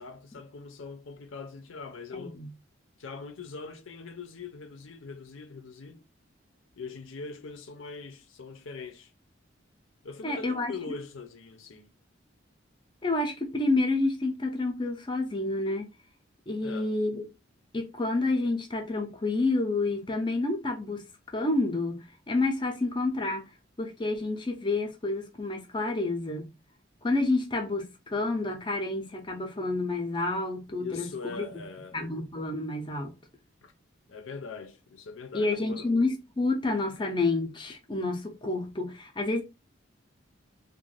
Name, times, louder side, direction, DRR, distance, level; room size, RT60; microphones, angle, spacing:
voice 1, 0.0-2.4 3.0-6.0 6.8-9.1 10.0-11.9 16.6-16.9 30.8-32.0 33.6-33.7 34.1-35.9, left 4 dB, 85° left, 0.6 m, -42 dB
voice 2, 2.1-2.5 10.2-10.7 13.0-15.9 16.5-17.2 17.7-21.0 21.3-23.5 23.8-26.5 27.0-31.7 31.9-33.1 35.3-39.4, left 2 dB, 25° left, 0.4 m, -29 dB
2.5 x 2.2 x 3.1 m
head